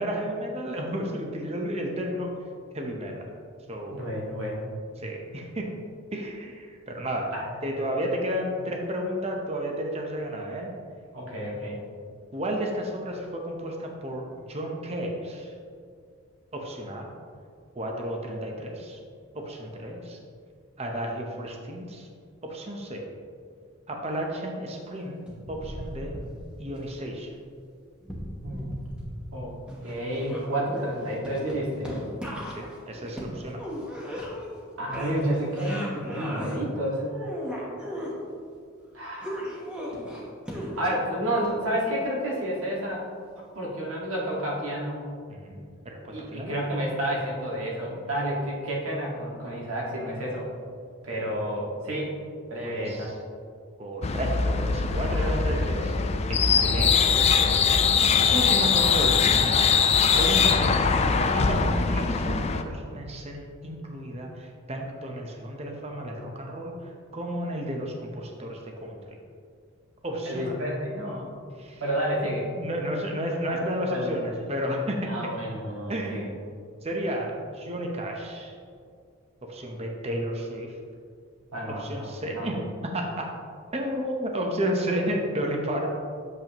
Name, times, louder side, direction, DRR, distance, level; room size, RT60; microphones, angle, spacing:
voice 1, 0.0-2.3 2.7-3.3 3.7-4.0 5.0-5.7 6.1-7.3 7.6-10.7 12.3-15.5 16.5-17.1 17.8-19.0 19.3-20.2 20.8-22.1 22.4-23.1 23.9-26.2 26.6-27.3 32.5-33.6 45.3-46.5 52.6-53.1 53.8-55.9 56.3-57.0 58.3-59.8 60.1-60.9 61.3-69.0 70.0-70.6 71.6-71.8 72.5-75.1 75.9-76.4 76.8-78.6 79.5-80.7 81.7-82.6 82.9-83.3 83.7-85.9, equal, 30° right, 1 dB, 0.8 m, -32 dB
voice 2, 3.9-4.7 7.3-7.5 11.1-11.8 28.4-28.9 29.3-29.5 29.8-31.9 34.8-37.1 38.9-39.5 40.8-43.0 43.6-45.1 46.1-50.5 51.0-52.1 52.5-53.1 55.1-56.1 56.7-57.8 60.1-60.3 70.2-71.3 71.8-72.5 73.4-73.6 73.9-74.2 75.1-76.3 81.5-82.5, equal, 80° right, -3 dB, 1.8 m, -30 dB
sound 1, 25.3-26.8 28.0-29.4 29.7-34.6 34.9-36.6 37.0-38.1 39.2-41.0 41.4-41.5, equal, 5° right, 1.0 m, -37 dB
sound 2, 54.0-62.6, left 6 dB, 30° left, 0.3 m, -22 dB
8.3 x 7.0 x 3.0 m, 2.2 s
head